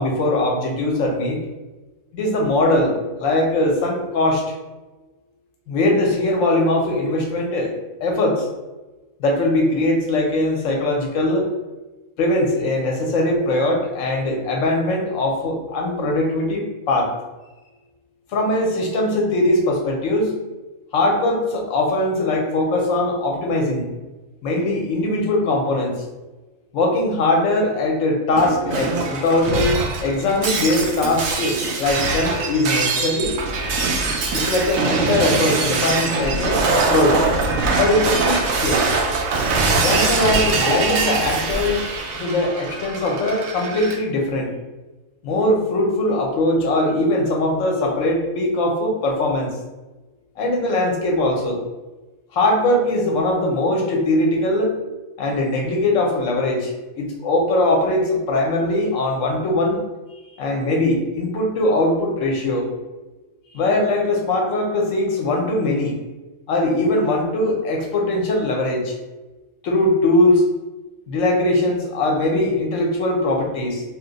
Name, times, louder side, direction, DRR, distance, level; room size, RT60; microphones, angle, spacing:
voice 1, 0.0-1.4 2.1-4.4 5.7-8.5 9.2-11.5 12.2-17.1 18.3-20.4 20.9-23.9 24.4-26.0 26.7-29.7 30.0-33.3 34.3-37.3 37.8-38.9 39.8-41.9 42.1-44.5 45.2-49.5 50.4-51.6 52.3-54.8 55.2-59.8 60.4-62.7 63.5-66.0 66.5-68.9 69.6-70.4 71.1-73.8, left 1 dB, 75° left, 1 dB, 1.0 m, -21 dB
Shatter, 28.4-44.0, right 3 dB, 80° right, 1.0 m, -22 dB
2.9 x 2.1 x 3.9 m, 1.1 s
omnidirectional pair, 1.4 m